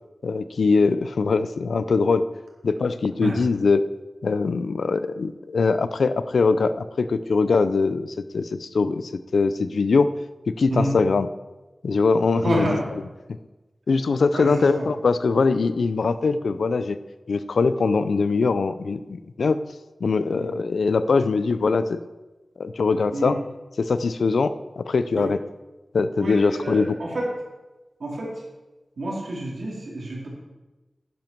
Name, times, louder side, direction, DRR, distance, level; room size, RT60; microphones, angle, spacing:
voice 1, 0.2-2.3 2.6-3.8 4.2-10.1 10.5-11.3 11.8-12.8 13.9-17.0 17.3-19.6 20.0-22.0 22.6-23.4 23.8-25.4 25.9-26.9, left 4 dB, 90° left, 13 dB, 0.5 m, -22 dB
voice 2, 12.4-12.8 14.3-14.9 20.3-20.5 23.1-23.4 25.2-25.3 26.2-27.3 28.0-28.4 29.0-30.3, right 1 dB, 85° right, -3 dB, 3.6 m, -28 dB
11.0 x 10.5 x 4.6 m, 1.1 s
cardioid pair, 55°, 0 cm